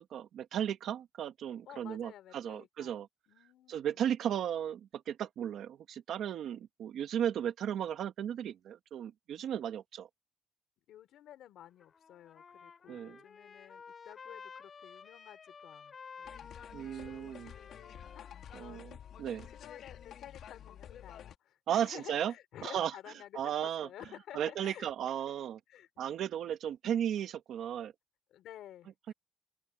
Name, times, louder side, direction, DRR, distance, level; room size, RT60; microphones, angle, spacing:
voice 1, 0.0-3.1 3.7-10.1 12.9-13.2 16.7-17.5 18.5-18.9 19.2-19.5 21.7-22.3 22.6-22.9 23.3-23.9 24.3-25.6 26.0-27.9 29.1-29.2, right 9 dB, 65° right, 1.6 m, -35 dB
voice 2, 1.7-2.9 3.3-4.1 10.9-16.6 18.1-18.8 19.5-24.9 25.7-25.9 28.3-29.1, left 12 dB, 80° left, 4.1 m, -52 dB
Trumpet, 11.6-20.1, left 6 dB, 35° left, 3.3 m, -53 dB
sound 1, 16.2-21.4, left 9 dB, 60° left, 3.5 m, -50 dB
open air
cardioid pair, 175°, 0 cm